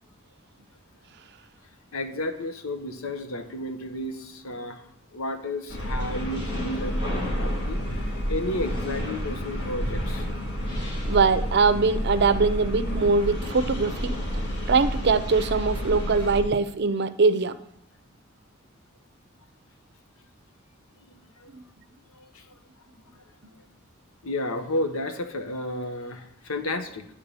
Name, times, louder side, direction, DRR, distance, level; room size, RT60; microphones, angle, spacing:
voice 1, 1.9-4.8 5.1-10.3 21.1-21.5 22.2-22.5 24.2-27.1, left 1 dB, 85° left, 8 dB, 0.9 m, -32 dB
sound 1, 5.7-16.4, equal, 55° left, 1.9 m, -30 dB
voice 2, 11.1-14.2 14.7-17.5 21.5-21.6, right 4 dB, 55° right, 12 dB, 0.5 m, -22 dB
10.5 x 3.7 x 6.8 m, 0.76 s
head